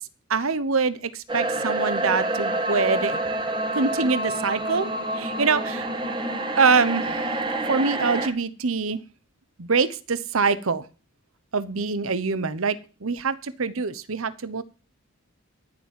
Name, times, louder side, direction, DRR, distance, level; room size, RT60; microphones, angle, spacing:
voice 1, 0.3-3.2 3.7-4.9 5.1-5.9 6.6-7.4 7.7-9.0 9.6-10.8 11.5-14.6, right 4 dB, 75° right, 15 dB, 1.0 m, -24 dB
sound 1, 1.3-8.3, right 2 dB, 20° right, 1.8 m, -27 dB
13.5 x 7.2 x 7.6 m, 0.35 s
head